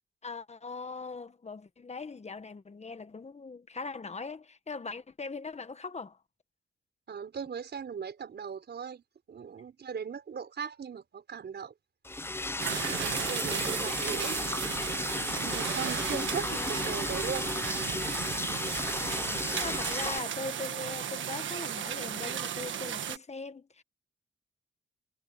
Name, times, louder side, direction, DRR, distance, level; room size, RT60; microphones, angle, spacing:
voice 1, 0.2-6.2 13.4-13.9 16.4-16.9 19.0-23.8, left 4 dB, 35° left, 1.4 m, -41 dB
voice 2, 7.1-9.0 9.3-11.7 12.9-14.5 15.4-17.5, right 7 dB, 60° right, 5.4 m, -38 dB
Liquid, 12.1-20.2, left 2 dB, 10° left, 0.6 m, -34 dB
sound 1, 12.6-23.2, right 9 dB, 80° right, 1.4 m, -35 dB
cardioid pair, 75°, 19 cm